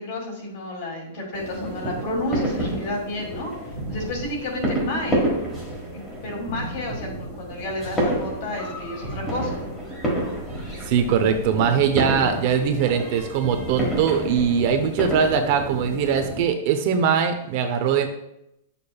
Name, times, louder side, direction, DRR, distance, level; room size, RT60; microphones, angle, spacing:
voice 1, 0.0-3.5 3.9-5.2 5.9-9.6, left 1 dB, 45° left, -1 dB, 2.5 m, -31 dB
sound 1, 1.3-16.5, right 1 dB, 10° left, 1.4 m, -29 dB
voice 2, 10.5-18.1, right 7 dB, 35° right, 6 dB, 0.6 m, -21 dB
10.0 x 6.7 x 2.3 m, 0.83 s
supercardioid pair, 175°, 0 cm